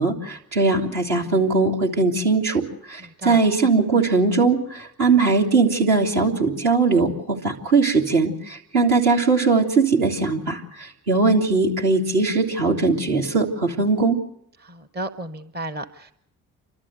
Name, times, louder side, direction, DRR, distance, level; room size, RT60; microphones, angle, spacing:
voice 1, 0.0-14.2, right 3 dB, 60° right, 0 dB, 3.1 m, -20 dB
voice 2, 14.6-16.1, right 1 dB, 20° right, 9 dB, 1.0 m, -33 dB
29.0 x 12.5 x 8.1 m, 0.77 s
figure-of-eight pair, 40°, 43 cm